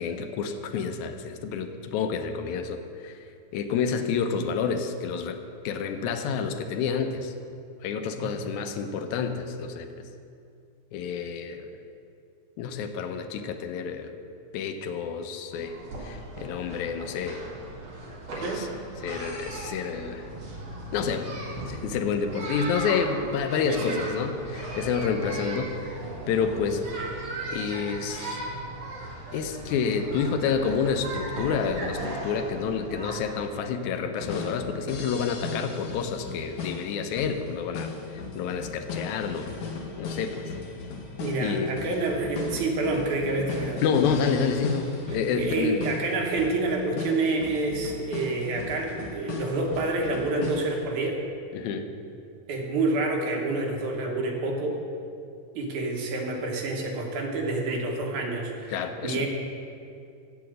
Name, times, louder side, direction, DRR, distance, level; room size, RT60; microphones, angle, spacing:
voice 1, 0.0-3.2 3.5-7.3 7.8-9.9 10.9-11.7 12.6-14.2 14.5-15.7 16.0-17.4 18.3-18.7 19.0-20.2 20.9-21.4 21.7-26.0 26.3-26.8 27.5-28.4 29.3-39.5 40.0-40.5 41.4-41.7 43.8-45.8 51.5-51.9 58.7-59.3, left 6 dB, 80° left, 7 dB, 2.0 m, -29 dB
sound 1, 15.5-33.5, right 2 dB, 60° right, 3.1 m, -37 dB
voice 2, 23.7-24.0 41.2-43.8 45.1-51.2 52.5-54.8 55.6-59.3, right 2 dB, 85° right, 0 dB, 2.6 m, -28 dB
sound 2, 34.2-50.8, left 5 dB, 60° left, 1.8 m, -37 dB
8.2 x 6.9 x 7.6 m, 2.5 s
omnidirectional pair, 3.4 m